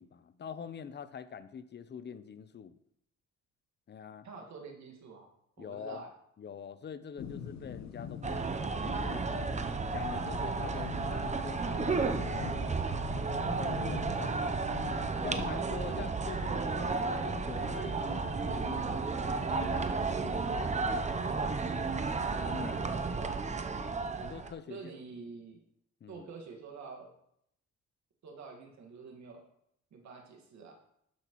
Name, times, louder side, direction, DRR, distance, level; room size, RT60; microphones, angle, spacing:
voice 1, 0.0-2.8 3.9-4.3 5.6-6.0 6.4-9.2 9.9-12.9 13.4-14.8 15.2-21.5 22.4-23.2 23.9-24.8 26.0-26.3, left 7 dB, 35° left, 13 dB, 0.6 m, -45 dB
voice 2, 4.2-6.1 15.9-16.2 22.8-23.7 24.7-25.6 26.1-27.1 28.2-29.4 29.9-30.7, right 4 dB, 65° right, 2 dB, 1.8 m, -48 dB
sound 1, 7.2-15.5, left 7 dB, 65° left, 0.9 m, -44 dB
sound 2, 8.2-24.5, right 4 dB, 25° right, 0.7 m, -33 dB
12.5 x 5.9 x 3.1 m, 0.74 s
cardioid pair, 90°, 30 cm